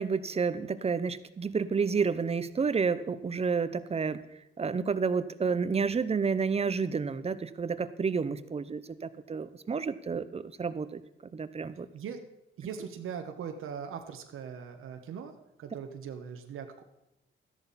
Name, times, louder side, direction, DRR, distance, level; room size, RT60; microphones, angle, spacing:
voice 1, 0.0-4.2 4.6-11.0 11.3-11.9, right 5 dB, 30° right, 14 dB, 0.7 m, -30 dB
voice 2, 12.6-15.3 15.6-16.8, right 7 dB, 80° right, 5 dB, 1.2 m, -40 dB
13.0 x 10.5 x 4.2 m, 0.89 s
cardioid pair, 95°, 21 cm